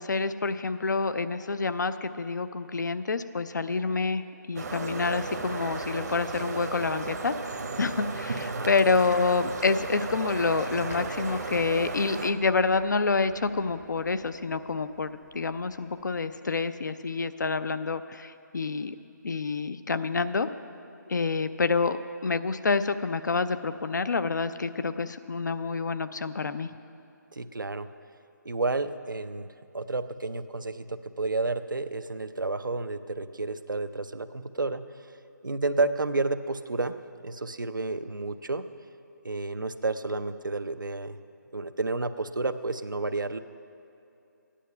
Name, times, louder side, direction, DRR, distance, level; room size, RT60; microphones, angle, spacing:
voice 1, 0.0-7.3 7.8-19.0 19.2-20.5 21.1-22.0 22.2-26.7, left 4 dB, 65° left, 11 dB, 0.6 m, -28 dB
sound 1, 4.6-12.3, right 4 dB, 55° right, 0.9 m, -35 dB
sound 2, 10.9-16.3, left 3 dB, 50° left, 1.0 m, -47 dB
voice 2, 27.3-27.9 28.4-29.5 29.7-34.8 35.4-37.0 37.2-38.6 39.2-41.2 41.5-43.4, right 3 dB, 90° right, 10 dB, 0.6 m, -31 dB
13.5 x 10.0 x 5.6 m, 2.8 s
figure-of-eight pair, 155°, 10 cm